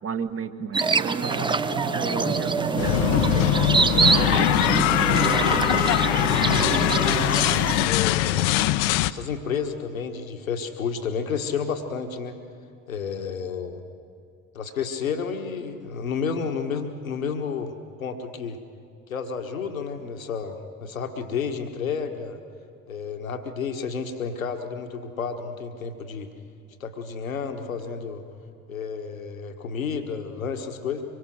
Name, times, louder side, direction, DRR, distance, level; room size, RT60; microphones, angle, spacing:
voice 1, 0.0-1.5 1.8-5.7, right 6 dB, 35° right, 8 dB, 1.5 m, -34 dB
sound 1, 0.7-7.9, right 4 dB, 10° right, 0.6 m, -25 dB
sound 2, 1.2-7.7, right 5 dB, 70° right, 1.9 m, -31 dB
sound 3, 2.8-9.1, left 15 dB, 60° left, 0.7 m, -22 dB
voice 2, 6.5-7.5 7.8-8.5 9.1-12.4 12.9-13.8 14.5-17.7 18.0-18.6 19.1-22.4 22.9-26.3 26.8-28.2 28.7-31.0, left 6 dB, 80° left, 6 dB, 1.4 m, -31 dB
25.0 x 23.0 x 6.3 m, 2.4 s
figure-of-eight pair, 55°, 40 cm